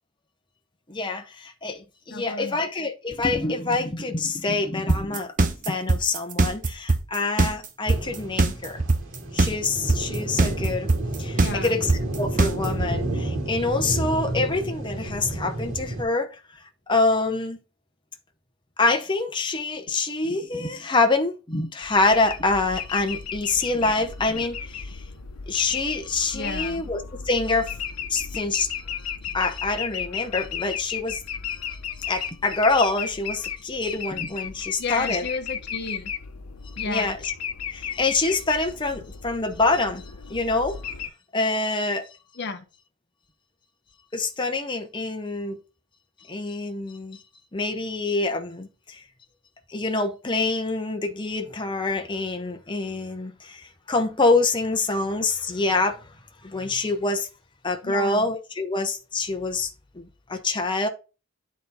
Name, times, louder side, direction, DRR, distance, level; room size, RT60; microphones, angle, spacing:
voice 1, 0.9-8.8 9.3-10.9 11.2-11.9 12.2-16.3 16.9-17.6 18.8-25.0 25.5-27.7 28.1-28.7 29.3-31.2 32.1-35.2 36.9-37.2 37.7-40.9 41.3-42.0 44.1-45.6 46.3-47.2 47.5-49.0 49.7-56.0 56.4-57.3 57.6-59.7 60.3-60.9, left 3 dB, 20° left, 0.8 m, -26 dB
voice 2, 2.1-2.6 11.3-11.8 26.3-26.8 34.8-36.1 36.8-37.2 42.3-42.6 57.8-58.3, left 4 dB, 50° left, 0.8 m, -33 dB
sound 1, 4.9-12.9, right 3 dB, 35° right, 0.9 m, -20 dB
sound 2, 7.9-16.0, right 1 dB, 60° right, 2.6 m, -31 dB
sound 3, 21.8-41.1, left 7 dB, 90° left, 0.9 m, -34 dB
9.1 x 4.2 x 4.0 m
head